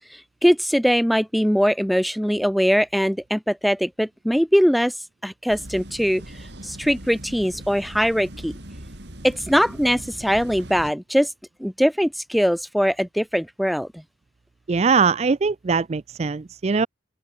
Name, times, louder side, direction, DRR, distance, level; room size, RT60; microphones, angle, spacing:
voice 1, 0.4-4.9 5.2-6.2 6.6-8.5 9.2-11.3 11.6-13.9, equal, ahead, 2.5 m, -21 dB
sound 1, 5.5-10.9, right 1 dB, 60° right, 3.9 m, -40 dB
voice 2, 14.7-16.9, right 5 dB, 35° right, 0.4 m, -21 dB
open air
head